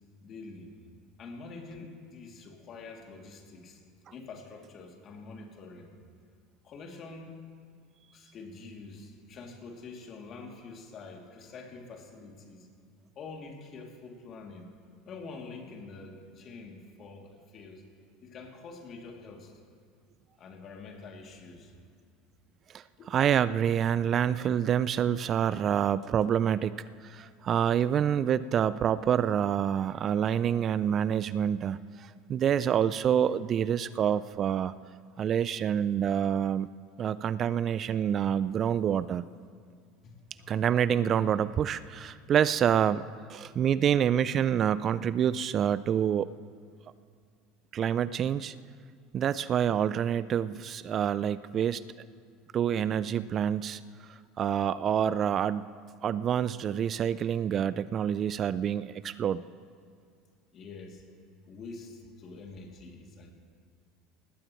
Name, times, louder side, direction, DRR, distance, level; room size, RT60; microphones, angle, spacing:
voice 1, 0.2-0.8 1.2-3.8 4.1-5.9 6.6-7.4 8.1-12.7 13.1-14.7 15.0-17.8 18.2-19.5 20.4-21.7 23.0-23.2 40.0-40.5 60.5-61.0 61.4-63.3, left 3 dB, 45° left, 1 dB, 2.8 m, -46 dB
voice 2, 22.7-34.7 35.2-36.7 37.0-39.3 40.5-43.0 43.3-46.3 47.7-48.5 49.1-51.8 52.5-53.8 54.4-55.7 56.0-59.4, right 9 dB, 40° right, 17 dB, 0.4 m, -27 dB
19.0 x 16.5 x 3.1 m, 2.2 s
hypercardioid pair, 80°, 0 cm